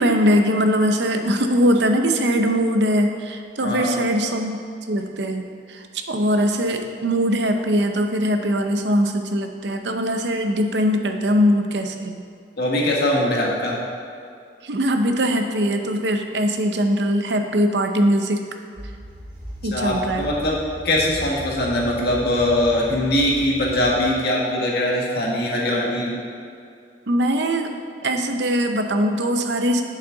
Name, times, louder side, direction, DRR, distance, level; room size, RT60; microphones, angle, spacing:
voice 1, 0.0-4.6 4.9-12.2 14.6-18.4 19.6-20.2 27.1-27.7 28.0-29.8, equal, 75° right, 5 dB, 0.7 m, -21 dB
voice 2, 3.6-3.9 12.6-13.8 19.7-20.6 20.8-26.2, left 1 dB, 65° left, -3 dB, 1.7 m, -21 dB
sound 1, 18.8-24.0, equal, 50° right, 1.9 m, -37 dB
8.8 x 7.3 x 3.9 m, 2.3 s
head